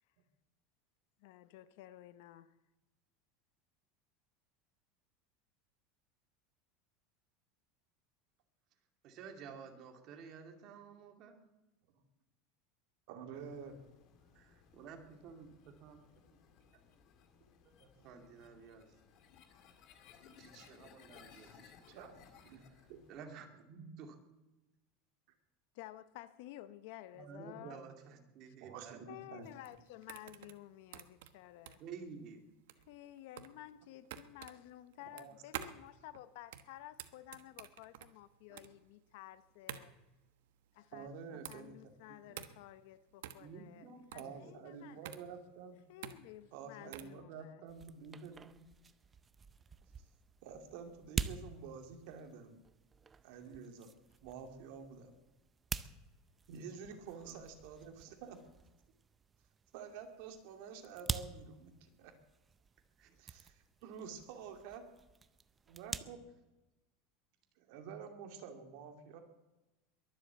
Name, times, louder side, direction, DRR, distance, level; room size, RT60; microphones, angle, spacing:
voice 1, 1.2-2.5 25.7-27.8 28.5-28.6 29.1-31.8 32.9-39.9 40.7-45.1 45.9-47.6, left 14 dB, 55° left, 0.7 m, -53 dB
voice 2, 9.0-11.4 14.3-16.0 17.6-18.9 20.4-22.1 22.5-22.6 23.1-24.2 27.1-29.0 31.8-32.4 43.4-44.5 57.2-57.4 63.0-63.2 66.0-66.1, right 6 dB, 35° right, 2.3 m, -52 dB
voice 3, 13.1-13.8 16.3-16.4 16.7-16.8 17.9-18.5 21.3-21.6 21.9-22.1 22.4-22.6 22.9-23.0 28.6-29.5 35.1-35.3 38.5-38.6 40.9-42.0 42.3-42.4 44.1-45.8 46.5-48.5 50.4-52.6 53.2-53.9 54.2-55.1 56.5-58.4 59.7-62.1 63.2-64.8 65.7-66.2 67.6-69.2, right 6 dB, 55° right, 2.5 m, -49 dB
sound 1, 13.3-23.2, left 7 dB, 40° left, 1.9 m, -62 dB
sound 2, 29.4-47.2, right 12 dB, 75° right, 1.2 m, -50 dB
sound 3, 47.7-66.0, right 5 dB, 15° right, 0.5 m, -47 dB
22.0 x 7.8 x 8.1 m
supercardioid pair, 175°, 0 cm